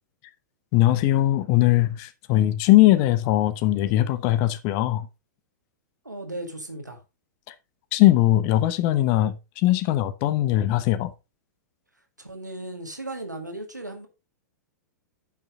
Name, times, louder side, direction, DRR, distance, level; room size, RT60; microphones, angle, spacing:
voice 1, 0.7-5.1 7.5-7.6 7.9-11.1, left 15 dB, 40° left, 0.9 m, -20 dB
voice 2, 6.0-7.0 12.2-14.1, right 1 dB, 90° right, 2.0 m, -36 dB
10.5 x 6.1 x 3.7 m
figure-of-eight pair, 100°, 9 cm